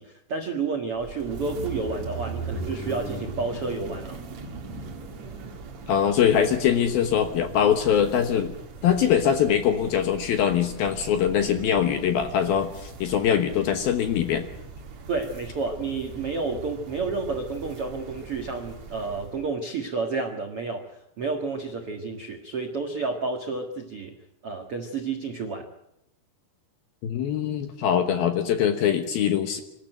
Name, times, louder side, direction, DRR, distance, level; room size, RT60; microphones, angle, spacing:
voice 1, 0.0-4.2 15.1-24.1 24.4-25.7, right 4 dB, 60° right, 3 dB, 1.4 m, -30 dB
sound 1, 0.9-19.5, right 3 dB, 45° right, 2.7 m, -39 dB
voice 2, 5.9-8.5 8.8-14.5 27.0-29.6, left 9 dB, 65° left, 7 dB, 2.6 m, -23 dB
25.5 x 13.5 x 9.2 m, 0.84 s
omnidirectional pair, 5.5 m